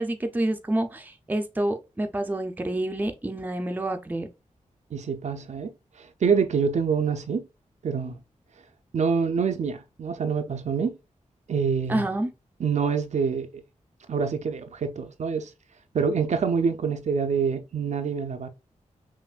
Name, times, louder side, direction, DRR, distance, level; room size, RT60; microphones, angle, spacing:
voice 1, 0.0-4.3 11.9-12.3, right 1 dB, 15° right, 0.5 m, -28 dB
voice 2, 4.9-7.5 7.8-8.2 8.9-11.0 11.5-12.0 12.6-13.6 14.1-15.5 15.9-18.5, right 6 dB, 65° right, 0.5 m, -26 dB
5.6 x 2.5 x 2.4 m
wide cardioid pair, 110°, 13 cm